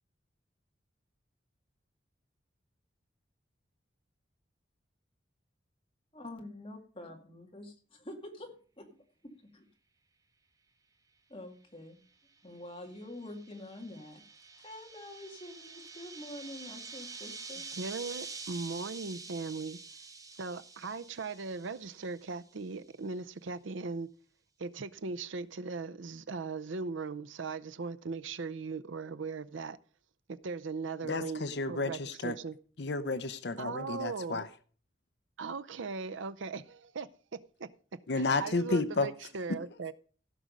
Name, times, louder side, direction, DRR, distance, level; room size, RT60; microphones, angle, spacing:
voice 1, 6.1-9.7 11.3-14.2 14.6-17.7, left 1 dB, 30° left, 2.1 m, -47 dB
sound 1, 12.6-22.4, right 4 dB, 20° right, 0.9 m, -47 dB
voice 2, 17.8-19.8 20.4-24.1 24.6-29.8 30.3-32.0 32.2-32.5 33.6-34.4 35.4-37.7 38.4-39.9, right 4 dB, 85° right, 0.6 m, -38 dB
voice 3, 31.0-32.4 32.8-34.5 38.1-39.1 39.7-39.9, left 3 dB, 60° left, 0.7 m, -32 dB
16.0 x 6.2 x 5.2 m
head